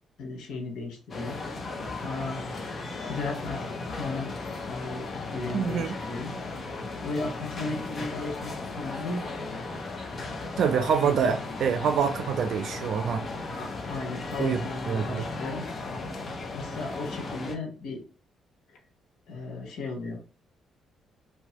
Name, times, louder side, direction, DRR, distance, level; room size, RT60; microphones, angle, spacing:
voice 1, 0.2-1.4 2.0-2.4 3.0-4.3 4.7-6.4 7.0-9.2 11.0-11.2 13.5-15.7 16.5-18.0 19.3-20.2, left 3 dB, 80° left, 0.8 m, -35 dB
sound 1, 1.1-17.5, left 3 dB, 40° left, 0.7 m, -36 dB
voice 2, 5.5-6.0 10.6-13.2 14.4-15.3, right 7 dB, 70° right, 0.4 m, -26 dB
2.8 x 2.2 x 2.9 m
cardioid pair, 90°, 0 cm